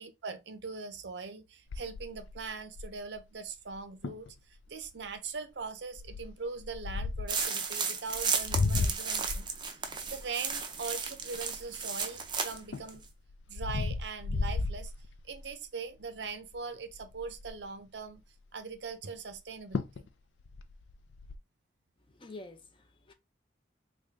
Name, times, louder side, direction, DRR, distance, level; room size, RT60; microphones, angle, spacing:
voice 1, 0.0-9.8 10.1-13.0 13.5-14.9 15.2-18.2 18.5-20.1, right 4 dB, 65° right, 0.6 m, -41 dB
sound 1, 1.7-3.2 3.7-3.8 4.0-4.3 4.8-5.1 6.0-7.4 8.1-12.0 12.5-15.5 16.0-16.3 16.5-16.6 16.9-17.6 19.3-19.4 19.7-20.1 20.4-21.4, left 3 dB, 80° left, 0.4 m, -34 dB
sound 2, 7.3-12.6 12.9-13.0, right 5 dB, 25° right, 0.5 m, -34 dB
voice 2, 22.1-23.1, left 2 dB, 25° left, 0.5 m, -48 dB
3.3 x 2.5 x 3.6 m
head